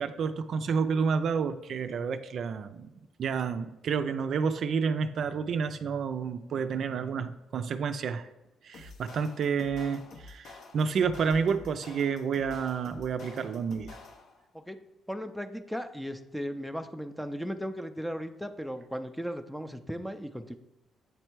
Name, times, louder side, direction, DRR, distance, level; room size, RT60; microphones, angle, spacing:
voice 1, 0.0-2.9 3.2-8.3 8.6-13.9, right 6 dB, 60° right, 9 dB, 0.4 m, -30 dB
sound 1, 8.7-14.4, left 3 dB, 70° left, 0.8 m, -49 dB
voice 2, 15.1-20.6, equal, ahead, 8 dB, 0.5 m, -36 dB
8.0 x 3.3 x 4.6 m, 0.95 s
cardioid pair, 90°, 0 cm